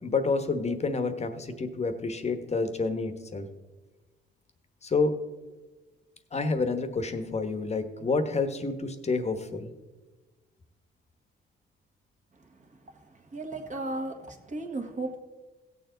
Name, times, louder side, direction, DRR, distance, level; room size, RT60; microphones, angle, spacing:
voice 1, 0.0-3.5 4.8-5.2 6.3-9.7, left 3 dB, 35° left, 9 dB, 1.1 m, -29 dB
voice 2, 13.3-15.2, right 2 dB, 40° right, 3 dB, 1.6 m, -35 dB
16.5 x 6.9 x 3.9 m, 1.2 s
cardioid pair, 90°, 20 cm